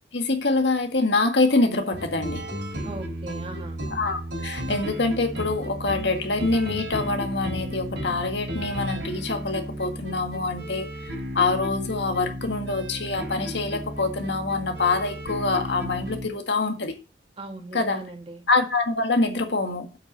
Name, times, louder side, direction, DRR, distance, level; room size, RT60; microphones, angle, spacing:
voice 1, 0.1-2.4 3.9-16.9 17.7-18.0 18.5-19.9, left 3 dB, 70° left, 1.9 m, -25 dB
sound 1, 1.9-16.3, equal, 85° right, 4.1 m, -34 dB
voice 2, 2.8-3.8 17.4-18.5, right 2 dB, 30° right, 2.0 m, -39 dB
8.1 x 6.0 x 6.8 m
head